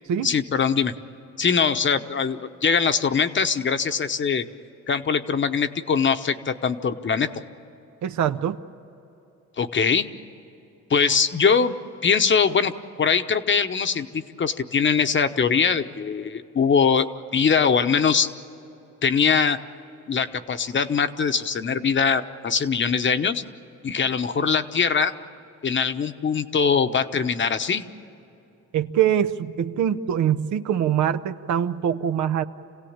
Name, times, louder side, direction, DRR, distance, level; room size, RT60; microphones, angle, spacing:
voice 1, 0.2-0.9 1.4-4.4 4.9-7.3 9.6-10.1 10.9-11.7 12.0-12.7 13.0-18.3 19.0-19.6 20.1-23.4 23.8-25.1 25.6-27.8, left 6 dB, 40° left, 9 dB, 1.0 m, -22 dB
voice 2, 8.0-8.6 28.7-32.4, right 9 dB, 75° right, 10 dB, 0.9 m, -23 dB
27.0 x 17.0 x 8.8 m, 2.9 s
cardioid pair, 90°, 30 cm